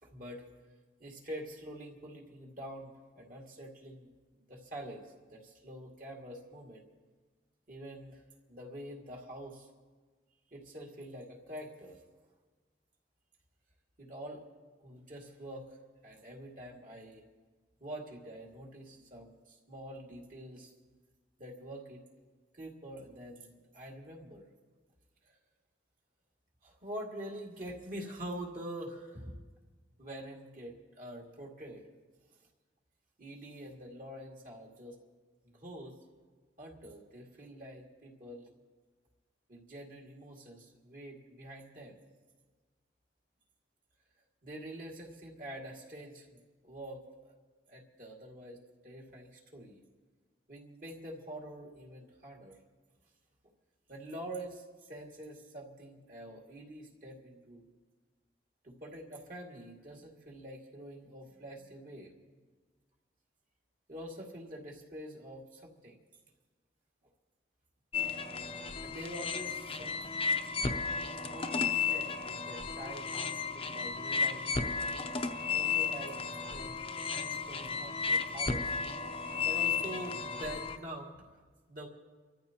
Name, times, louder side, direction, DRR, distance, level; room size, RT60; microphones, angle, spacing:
voice 1, 0.0-0.4 1.0-4.1 4.5-5.1 5.3-6.8 7.7-8.2 8.5-9.7 10.5-12.0 14.0-14.4 14.8-15.7 16.0-17.2 17.8-20.7 21.4-22.0 22.5-24.4 25.3-25.4 26.6-29.4 30.0-31.8 33.2-35.0 35.4-36.0 36.6-38.5 39.5-42.0 44.4-47.3 47.7-49.8 50.5-52.6 53.9-57.6 58.6-62.1 63.9-66.0 68.8-70.1 71.2-74.8 75.5-76.8 77.1-78.7 79.3-81.4 81.7-81.9, right 1 dB, 45° right, -1 dB, 2.3 m, -46 dB
sound 1, 67.9-80.8, left 5 dB, 30° left, 0.7 m, -34 dB
29.5 x 14.0 x 3.0 m, 1.4 s
head